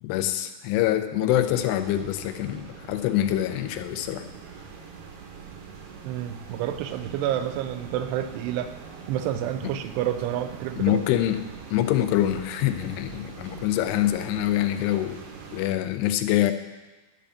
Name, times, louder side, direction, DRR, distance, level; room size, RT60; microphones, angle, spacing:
voice 1, 0.0-4.3 9.6-9.7 10.8-11.4 11.7-15.2 15.5-16.5, left 12 dB, 90° left, 9 dB, 2.8 m, -25 dB
sound 1, 1.3-15.7, right 5 dB, 65° right, 2.6 m, -43 dB
voice 2, 6.0-8.7 9.1-11.0, right 11 dB, 85° right, 9 dB, 2.7 m, -29 dB
11.5 x 5.1 x 6.8 m, 1.2 s
omnidirectional pair, 4.7 m